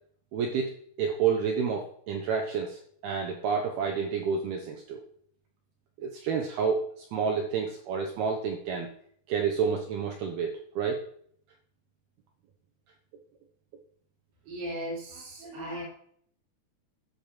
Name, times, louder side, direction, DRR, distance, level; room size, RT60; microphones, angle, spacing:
voice 1, 0.3-5.0 6.0-8.9 9.3-11.0, right 6 dB, 80° right, 2 dB, 2.2 m, -29 dB
voice 2, 14.5-15.8, equal, 50° right, -7 dB, 4.3 m, -37 dB
11.5 x 5.0 x 7.2 m, 0.64 s
omnidirectional pair, 5.7 m